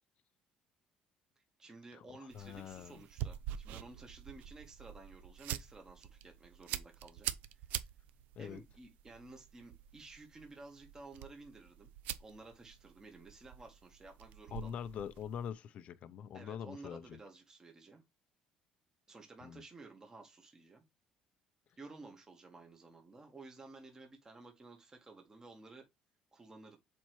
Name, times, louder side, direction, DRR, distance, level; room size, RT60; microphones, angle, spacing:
voice 1, 1.6-7.7 8.4-11.9 12.2-14.8 16.3-18.0 19.1-20.8 21.8-25.9 26.3-26.8, right 3 dB, 20° right, 1.6 m, -54 dB
voice 2, 2.3-3.0 8.4-8.6 14.5-17.2 19.4-19.6, left 8 dB, 50° left, 0.6 m, -43 dB
sound 1, 2.3-15.5, right 11 dB, 75° right, 0.7 m, -46 dB
7.3 x 4.4 x 3.1 m
cardioid pair, 120°, 3 cm